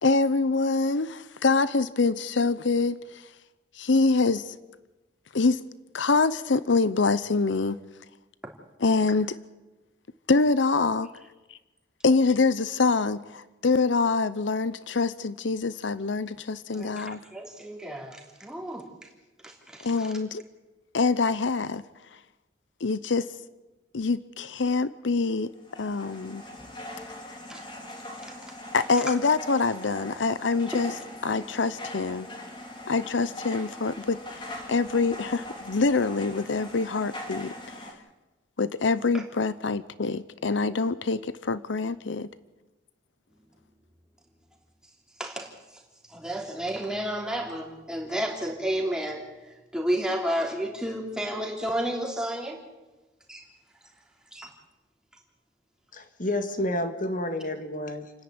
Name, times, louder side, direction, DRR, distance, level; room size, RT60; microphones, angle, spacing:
voice 1, 0.0-3.2 3.8-4.5 5.3-5.6 5.9-7.8 8.8-9.3 10.3-11.1 12.0-17.2 19.8-20.4 20.9-21.8 22.8-23.3 23.9-25.5 25.8-26.4 28.7-30.9 31.2-32.3 32.9-37.5 37.8-37.9 38.6-42.3, left 4 dB, 75° left, 0.8 m, -25 dB
voice 2, 16.7-18.8 19.4-20.1 27.5-27.6 28.2-28.3 39.1-39.2 45.2-45.5 46.1-49.2 49.7-52.6 53.3-53.4 54.3-54.5, right 1 dB, 5° right, 3.3 m, -31 dB
sound 1, 25.5-37.9, left 1 dB, 25° left, 3.8 m, -41 dB
voice 3, 55.9-58.1, left 1 dB, 45° left, 2.1 m, -30 dB
29.0 x 10.5 x 9.7 m
head